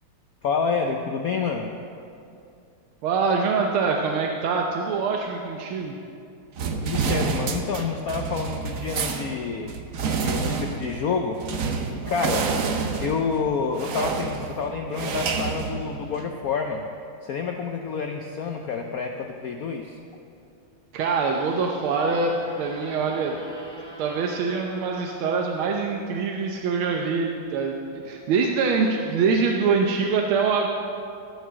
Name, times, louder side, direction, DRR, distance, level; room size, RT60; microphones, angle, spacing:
voice 1, 0.4-1.7 6.8-9.7 10.2-11.4 12.1-12.5 13.0-16.9 17.2-20.0, left 5 dB, 75° left, 3 dB, 0.8 m, -28 dB
voice 2, 3.0-5.9 20.9-23.4 24.0-30.7, right 5 dB, 80° right, 1 dB, 1.6 m, -24 dB
sound 1, 6.6-16.4, right 5 dB, 60° right, 0.9 m, -28 dB
sound 2, 21.0-26.3, right 1 dB, 30° right, 1.6 m, -46 dB
14.5 x 5.7 x 7.4 m, 2.5 s
omnidirectional pair, 2.3 m